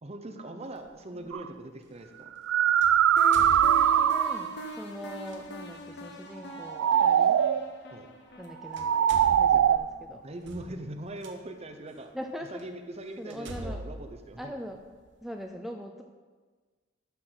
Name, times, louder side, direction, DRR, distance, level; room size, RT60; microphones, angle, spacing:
voice 1, 0.0-2.3 7.9-8.1 9.5-9.7 10.1-12.1 12.5-14.5, right 1 dB, 35° right, 5 dB, 0.7 m, -41 dB
sound 1, 0.7-0.9 2.8-4.3 5.2-5.4 7.3-7.4 8.3-8.5 8.7-11.3 12.0-12.1 12.6-12.7 13.3-15.1, right 1 dB, 65° right, 0.9 m, -43 dB
sound 2, 1.3-1.5 2.3-4.6 6.5-7.7 8.6-9.8, right 9 dB, 80° right, 0.3 m, -22 dB
sound 3, 3.2-9.9, left 2 dB, 60° left, 0.9 m, -43 dB
voice 2, 3.6-7.4 8.4-10.2 12.1-12.6 13.2-13.8 14.4-14.8 15.2-16.0, equal, ahead, 3 dB, 0.4 m, -41 dB
12.5 x 6.1 x 3.9 m, 1.4 s
head